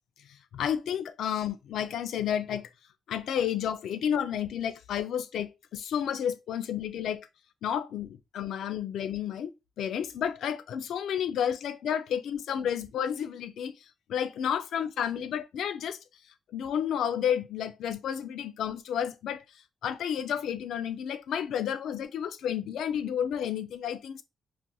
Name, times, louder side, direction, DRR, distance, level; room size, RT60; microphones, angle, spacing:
voice 1, 0.2-2.7 3.1-7.3 7.6-16.0 16.5-19.4 19.8-24.2, left 9 dB, 80° left, 0.3 m, -31 dB
4.0 x 2.4 x 2.2 m
cardioid pair, 70°, 0 cm